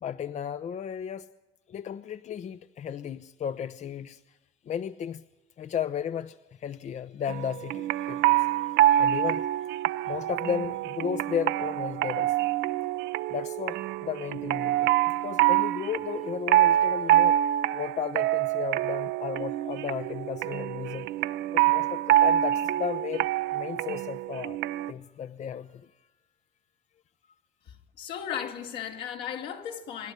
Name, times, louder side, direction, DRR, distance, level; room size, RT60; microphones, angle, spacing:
voice 1, 0.0-1.3 1.7-4.2 4.7-5.2 5.6-9.5 10.0-12.4 13.3-14.9 15.2-17.4 17.7-21.1 21.5-23.3 23.5-24.6 24.9-25.9 28.4-28.5, left 8 dB, 45° left, 0.6 m, -34 dB
sound 1, 7.3-24.9, right 13 dB, 80° right, 0.7 m, -26 dB
voice 2, 27.7-30.1, left 9 dB, 80° left, 3.4 m, -36 dB
25.5 x 11.5 x 10.0 m
cardioid pair, 110°, 17 cm